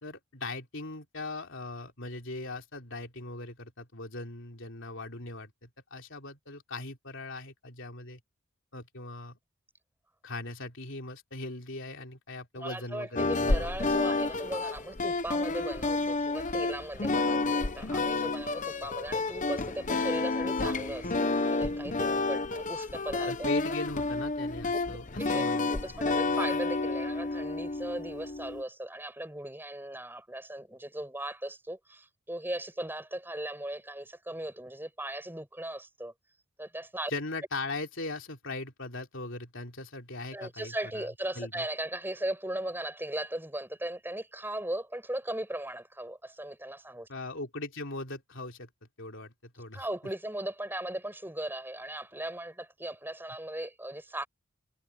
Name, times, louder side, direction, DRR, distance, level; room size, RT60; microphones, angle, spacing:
voice 1, 0.0-8.2 8.7-9.4 10.2-13.7 23.3-25.7 37.1-41.1 41.4-41.7 47.1-48.7 49.0-49.9, left 2 dB, 60° left, 3.6 m, -39 dB
voice 2, 12.5-23.5 25.2-25.4 25.7-36.1 36.6-37.1 40.3-47.1 49.7-54.3, right 1 dB, 10° right, 6.8 m, -38 dB
Light jazz, 13.1-28.6, left 3 dB, 35° left, 0.9 m, -30 dB
head